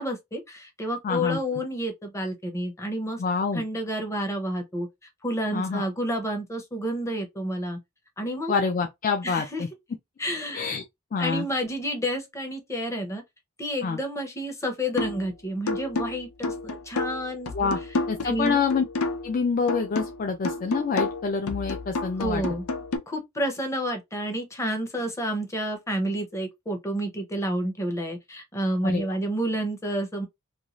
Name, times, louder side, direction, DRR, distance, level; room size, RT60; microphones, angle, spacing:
voice 1, 0.0-3.2 3.5-4.9 5.2-7.8 8.2-8.6 9.2-9.6 10.2-10.7 11.2-13.2 13.6-17.7 18.2-18.7 22.2-22.6 23.1-30.3, equal, 15° left, 0.7 m, -30 dB
voice 2, 1.0-1.4 3.2-3.6 5.5-5.9 8.5-9.7 10.5-10.9 11.1-11.5 13.8-14.0 17.5-17.8 18.1-18.8 19.2-22.4 28.8-29.2, left 5 dB, 40° left, 0.4 m, -26 dB
sound 1, 15.0-15.3 15.7-19.4 19.7-23.0, left 3 dB, 90° left, 0.6 m, -30 dB
2.6 x 2.3 x 3.0 m
head